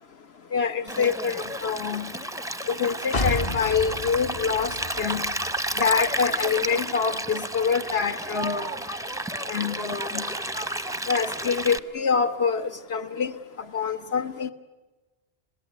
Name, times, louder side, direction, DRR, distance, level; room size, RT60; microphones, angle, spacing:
voice 1, 0.5-2.1 2.7-5.3 5.8-8.7 9.5-10.2 11.1-13.4 13.7-14.5, left 6 dB, 80° left, 8 dB, 1.5 m, -26 dB
Stream, 0.9-11.8, right 1 dB, 5° right, 0.5 m, -32 dB
sound 1, 3.1-6.9 7.2-7.3, left 2 dB, 45° left, 1.1 m, -32 dB
26.0 x 18.5 x 9.3 m, 1.2 s
omnidirectional pair, 1.0 m